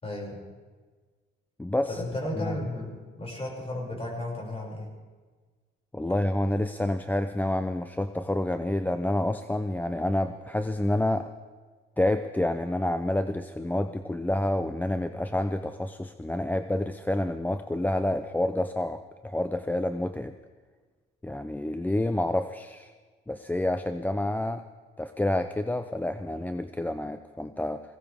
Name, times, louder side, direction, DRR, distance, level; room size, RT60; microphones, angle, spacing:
voice 1, 0.0-0.4 1.9-4.9, left 1 dB, 30° left, -2 dB, 6.6 m, -34 dB
voice 2, 1.6-2.0 2.4-2.6 5.9-11.3 12.0-20.3 21.2-22.9 23.3-24.6 25.0-27.8, left 1 dB, 10° left, 9 dB, 0.6 m, -28 dB
22.0 x 17.0 x 3.7 m, 1.4 s
cardioid pair, 90°, 20 cm